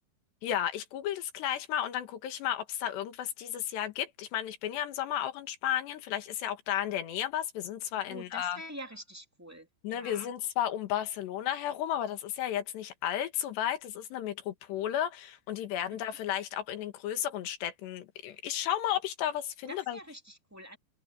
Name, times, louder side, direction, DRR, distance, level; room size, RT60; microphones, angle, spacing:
voice 1, 0.4-8.6 9.8-20.0, left 11 dB, 75° left, 3.8 m, -33 dB
voice 2, 7.9-10.3 19.7-20.8, right 1 dB, 10° right, 0.8 m, -46 dB
omnidirectional pair, 5.0 m